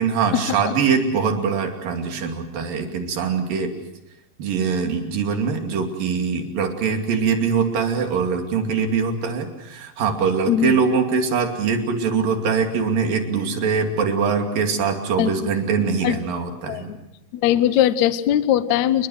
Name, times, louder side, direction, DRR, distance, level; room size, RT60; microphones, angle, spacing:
voice 1, 0.0-3.7 4.4-16.9, right 5 dB, 65° right, 4 dB, 4.3 m, -22 dB
voice 2, 10.5-10.8 15.2-15.5 16.0-16.2 16.7-17.0 17.3-19.1, left 11 dB, 70° left, 13 dB, 1.8 m, -20 dB
29.5 x 22.0 x 6.4 m, 0.89 s
omnidirectional pair, 4.3 m